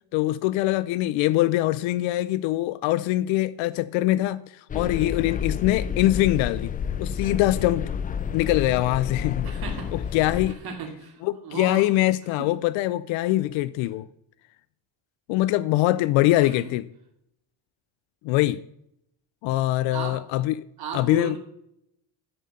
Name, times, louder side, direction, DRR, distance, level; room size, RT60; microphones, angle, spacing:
voice 1, 0.1-6.7 7.0-7.9 8.3-9.5 9.9-10.6 11.2-14.1 15.3-16.9 18.2-18.6 19.4-20.5 20.9-21.4, left 16 dB, 90° left, 0.6 m, -23 dB
sound 1, 4.7-10.5, left 7 dB, 20° left, 0.3 m, -30 dB
voice 2, 9.4-9.9 10.6-11.1 11.4-11.9 16.4-16.7 19.9-20.2 20.8-21.4, right 6 dB, 55° right, 2.7 m, -35 dB
12.5 x 5.7 x 7.6 m
cardioid pair, 120°, 45 cm